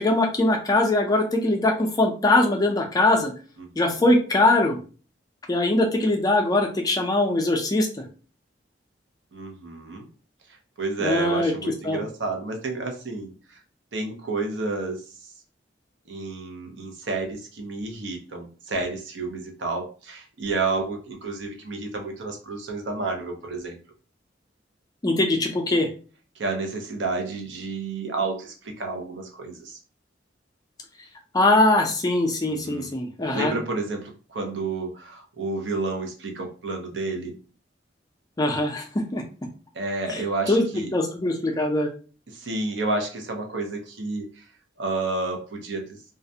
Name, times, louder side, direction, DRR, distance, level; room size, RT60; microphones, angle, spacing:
voice 1, 0.0-3.3 3.8-4.8 5.5-8.0 11.0-11.5 11.8-12.0 25.0-25.9 31.3-33.5 38.4-39.2 40.1-40.2 40.5-40.7 40.9-41.9, left 2 dB, 20° left, 3 dB, 0.4 m, -21 dB
voice 2, 3.6-4.0 9.3-10.1 10.8-13.6 13.9-15.3 16.1-23.8 26.4-29.8 32.5-32.9 33.3-37.4 39.7-40.9 42.3-44.4 44.8-46.0, right 3 dB, 75° right, 3 dB, 0.6 m, -30 dB
2.4 x 2.1 x 2.7 m, 0.38 s
head